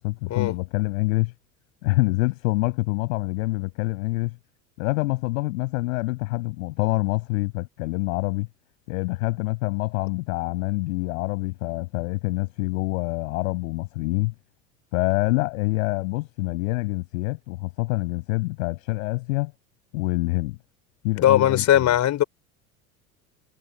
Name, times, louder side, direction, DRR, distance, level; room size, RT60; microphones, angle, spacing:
voice 1, 0.0-1.3 1.8-4.4 4.8-8.5 8.9-14.3 14.9-19.5 19.9-20.6 21.0-21.6, left 22 dB, 60° left, 7.4 m, -26 dB
voice 2, 21.2-22.2, left 11 dB, 40° left, 4.5 m, -19 dB
figure-of-eight pair, 75°, 45 cm